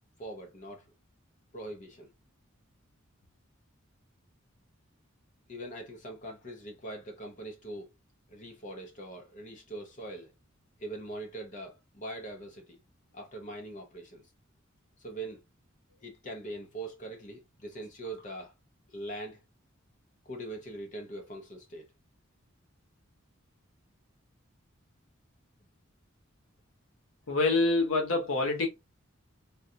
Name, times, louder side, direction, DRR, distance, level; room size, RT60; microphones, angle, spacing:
voice 1, 0.2-0.9 1.5-2.1 5.5-7.9 8.3-10.3 10.8-12.8 13.1-14.3 15.0-15.4 16.0-18.5 18.9-19.4 20.2-21.9, right 1 dB, 40° left, 0.6 m, -42 dB
voice 2, 27.3-28.7, left 3 dB, 75° left, 1.1 m, -26 dB
3.6 x 2.3 x 2.7 m
head